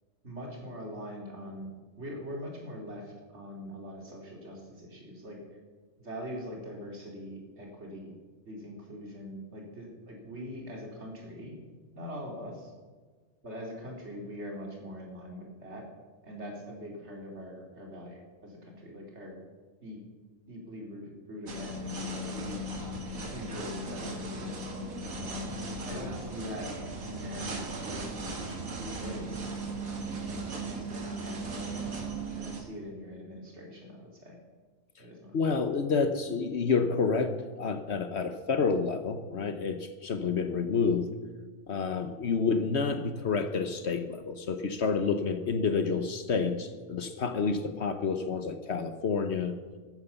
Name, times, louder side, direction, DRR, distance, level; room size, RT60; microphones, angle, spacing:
voice 1, 0.2-1.7 2.0-5.4 6.0-8.1 8.4-11.6 11.9-12.7 13.4-15.9 16.2-19.4 19.8-20.0 20.5-22.6 23.3-24.6 25.1-25.5 25.8-26.7 27.0-29.4 29.9-34.4 35.0-35.5 42.3-42.5, equal, 55° right, 0 dB, 3.2 m, -42 dB
sound 1, 21.5-32.6, right 2 dB, 90° right, 2.3 m, -37 dB
voice 2, 35.3-41.1 41.7-49.6, left 5 dB, 55° left, 9 dB, 1.1 m, -29 dB
14.0 x 9.4 x 7.0 m, 1.4 s
omnidirectional pair, 1.4 m